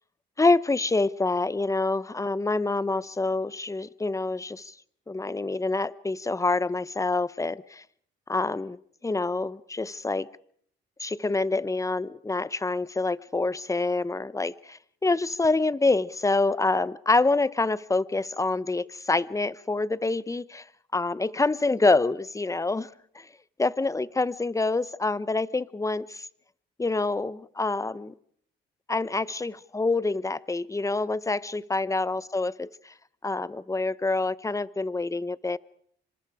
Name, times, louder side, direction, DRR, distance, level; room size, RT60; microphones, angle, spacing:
voice 1, 0.4-4.7 5.1-7.8 8.3-10.3 11.0-20.6 20.9-22.9 23.1-23.3 23.6-26.3 26.8-28.1 28.9-32.9 33.2-35.6, left 3 dB, 15° left, 18 dB, 0.9 m, -26 dB
27.0 x 26.0 x 4.9 m, 0.63 s
cardioid pair, 90°, 20 cm